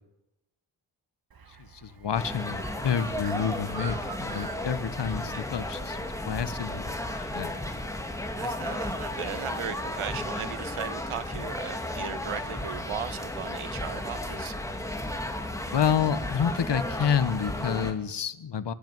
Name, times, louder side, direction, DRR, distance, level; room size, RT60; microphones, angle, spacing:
Bird, 1.3-6.5, right 6 dB, 45° right, 1.4 m, -46 dB
voice 1, 1.6-6.0 6.2-7.5 15.7-18.7, left 7 dB, 55° left, 13 dB, 1.3 m, -29 dB
sound 1, 2.1-17.9, left 1 dB, 5° left, 2.5 m, -34 dB
voice 2, 2.8-3.2 5.3-5.4 8.4-14.5, right 9 dB, 80° right, 13 dB, 1.4 m, -37 dB
26.5 x 12.5 x 9.4 m, 0.93 s
wide cardioid pair, 115°, 49 cm